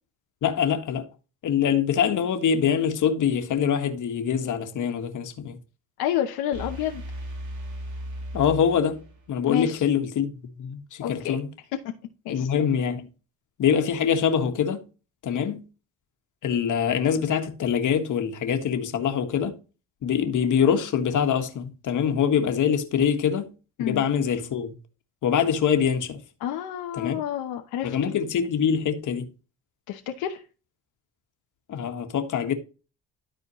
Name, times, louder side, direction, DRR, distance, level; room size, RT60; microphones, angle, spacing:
voice 1, 0.4-1.1 1.4-5.6 8.3-10.3 10.6-11.5 12.3-13.1 13.6-14.8 15.2-15.6 16.4-19.6 20.0-23.5 23.8-24.7 25.2-26.2 26.9-27.2 27.8-29.3 31.7-32.5, left 7 dB, 55° left, 1.5 m, -24 dB
voice 2, 6.0-7.0 9.5-9.8 11.0-11.4 11.8-11.9 12.2-12.5 23.8-24.0 26.4-27.9 29.9-30.4, left 11 dB, 85° left, 1.0 m, -29 dB
sound 1, 6.5-9.4, equal, 55° right, 2.1 m, -36 dB
12.5 x 4.3 x 3.0 m
cardioid pair, 95°, 36 cm